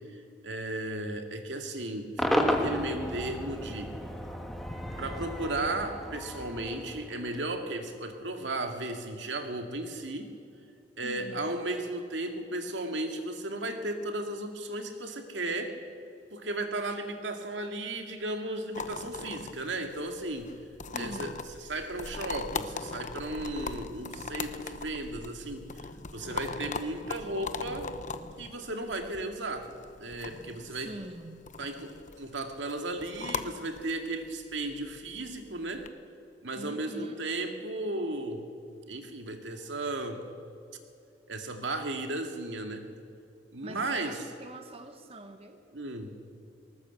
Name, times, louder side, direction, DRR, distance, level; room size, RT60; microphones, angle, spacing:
voice 1, 0.1-3.9 5.0-10.3 11.0-15.8 16.3-20.5 20.9-27.9 28.4-29.7 30.0-30.9 31.6-35.9 36.4-38.4 38.9-40.2 41.3-42.9 43.5-44.2 45.7-46.1, right 2 dB, 75° right, 5 dB, 2.2 m, -35 dB
Cheering / Crowd / Fireworks, 2.2-7.5, equal, ahead, 1.7 m, -33 dB
voice 2, 11.0-11.5 20.9-21.4 30.7-31.6 36.5-37.3 43.6-45.6, right 1 dB, 35° right, 6 dB, 1.2 m, -44 dB
sound 1, 18.7-35.9, left 4 dB, 45° left, 0.9 m, -40 dB
19.5 x 19.0 x 8.1 m, 2.6 s
head